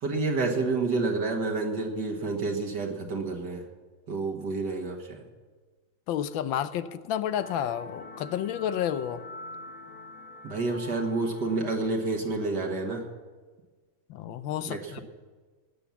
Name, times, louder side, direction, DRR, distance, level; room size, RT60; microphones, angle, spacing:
voice 1, 0.0-3.6 4.1-5.2 10.4-13.1 14.7-15.0, right 3 dB, 55° right, 1 dB, 2.0 m, -29 dB
voice 2, 6.1-9.2 14.1-15.0, left 10 dB, 75° left, 13 dB, 1.4 m, -30 dB
sound 1, 7.4-12.8, left 2 dB, 60° left, 1.6 m, -45 dB
18.5 x 8.9 x 7.1 m, 1.4 s
omnidirectional pair, 2.2 m